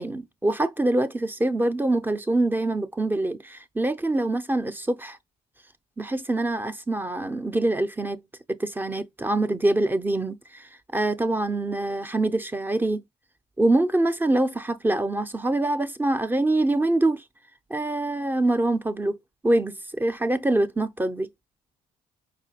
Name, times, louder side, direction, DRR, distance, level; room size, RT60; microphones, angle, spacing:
voice 1, 0.0-5.2 6.0-8.2 8.5-10.6 10.9-13.0 13.6-17.2 17.7-19.2 19.4-21.3, right 2 dB, 10° right, 0.5 m, -24 dB
5.1 x 2.2 x 2.7 m
cardioid pair, 110°, 17 cm